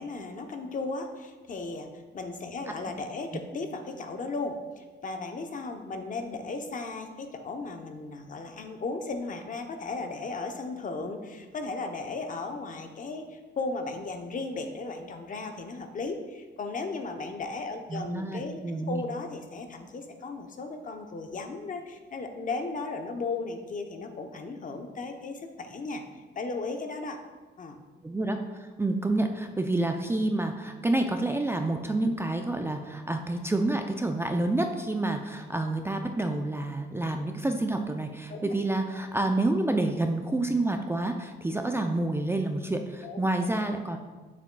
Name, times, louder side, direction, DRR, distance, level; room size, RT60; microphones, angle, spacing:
voice 1, 0.0-1.9 2.1-26.0 26.4-27.2 27.6-27.7 38.3-38.6 43.0-43.3, left 3 dB, 40° left, 5 dB, 0.8 m, -36 dB
voice 2, 17.9-19.0 28.0-44.0, right 2 dB, 10° right, 4 dB, 0.4 m, -28 dB
7.1 x 6.9 x 2.2 m, 1.3 s
cardioid pair, 90°, 20 cm